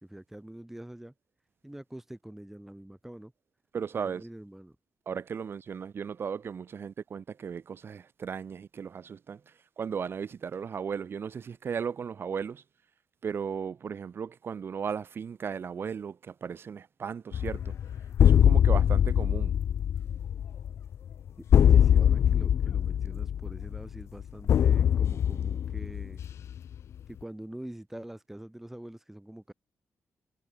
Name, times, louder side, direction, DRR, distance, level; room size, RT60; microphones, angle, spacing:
voice 1, 0.0-1.1 1.6-3.3 3.9-4.8 21.5-26.2 27.1-29.5, right 1 dB, 5° right, 3.5 m, -45 dB
voice 2, 3.7-4.2 5.1-12.6 13.2-17.7 18.2-19.6, right 6 dB, 45° right, 3.5 m, -36 dB
sound 1, 17.3-26.8, left 9 dB, 55° left, 0.3 m, -23 dB
wide cardioid pair, 170°, 6 cm